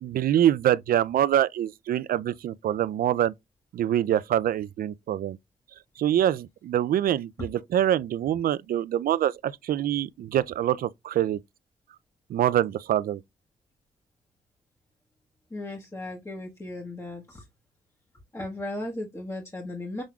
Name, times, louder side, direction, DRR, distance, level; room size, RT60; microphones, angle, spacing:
voice 1, 0.0-3.3 3.7-5.4 6.0-11.4 12.3-13.2, right 11 dB, 70° right, 0.4 m, -25 dB
voice 2, 15.5-17.4 18.3-20.0, left 1 dB, 20° left, 1.4 m, -36 dB
6.2 x 3.5 x 2.3 m
cardioid pair, 60°, 16 cm